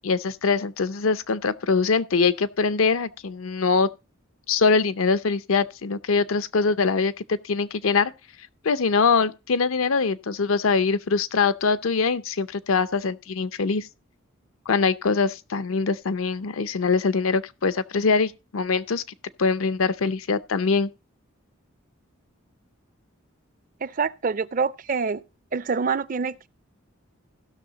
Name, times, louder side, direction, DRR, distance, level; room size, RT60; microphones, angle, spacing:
voice 1, 0.0-3.9 4.5-8.1 8.6-13.9 14.7-19.0 19.4-20.9, left 4 dB, 80° left, 0.6 m, -23 dB
voice 2, 23.8-25.2 25.5-26.5, right 5 dB, 40° right, 0.4 m, -26 dB
16.0 x 6.3 x 3.9 m
head